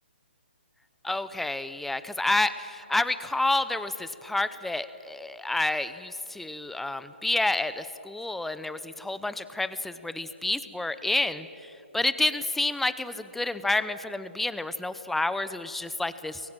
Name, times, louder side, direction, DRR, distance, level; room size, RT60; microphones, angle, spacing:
voice 1, 1.0-11.5 11.9-16.4, left 2 dB, 5° left, 13 dB, 0.8 m, -29 dB
29.0 x 22.5 x 9.1 m, 2.9 s
hypercardioid pair, 150°, 6 cm